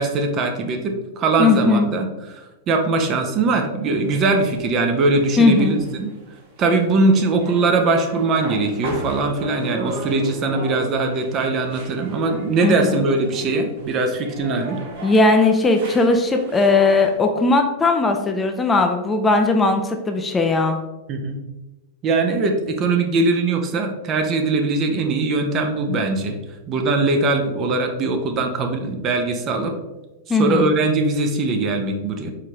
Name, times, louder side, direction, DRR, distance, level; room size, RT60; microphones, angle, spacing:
voice 1, 0.0-2.4 2.7-6.1 6.6-14.8 21.1-21.4 22.0-26.4 26.7-29.7 30.4-32.3, right 3 dB, 35° right, 4 dB, 0.7 m, -21 dB
voice 2, 1.4-1.9 5.4-5.7 12.6-13.0 15.0-20.8 30.3-30.7, left 3 dB, 15° left, 4 dB, 0.4 m, -18 dB
sound 1, 4.0-17.2, right 2 dB, 60° right, 1.2 m, -37 dB
4.7 x 3.4 x 3.0 m, 1.1 s
figure-of-eight pair, 95°, 0 cm